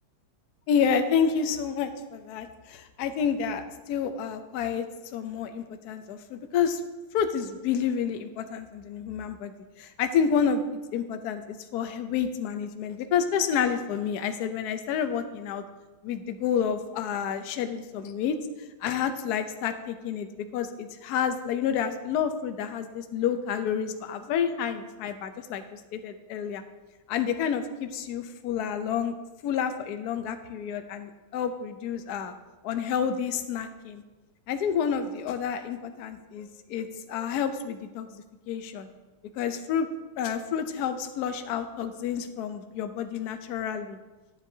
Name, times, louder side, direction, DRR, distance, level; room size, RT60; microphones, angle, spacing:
voice 1, 0.7-4.9 5.1-6.8 7.1-9.5 9.8-10.6 10.9-15.6 16.0-18.4 18.8-20.3 20.5-26.6 27.1-29.1 29.4-32.3 32.6-34.0 34.5-38.9 39.4-39.9 40.2-44.0, left 7 dB, 75° left, 8 dB, 0.9 m, -29 dB
11.5 x 7.5 x 2.7 m, 1.2 s
omnidirectional pair, 2.3 m